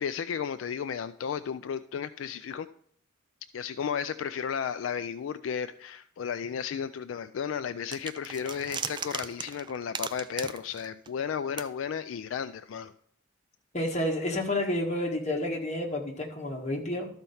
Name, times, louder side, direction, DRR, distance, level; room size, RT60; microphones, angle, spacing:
voice 1, 0.0-2.7 3.5-12.9, left 7 dB, 70° left, 11 dB, 0.3 m, -33 dB
sound 1, 7.9-11.3 11.6-11.7, right 6 dB, 25° right, 0.3 m, -37 dB
voice 2, 13.7-17.1, left 1 dB, 35° left, 0 dB, 1.7 m, -30 dB
12.5 x 4.4 x 5.5 m, 0.63 s
head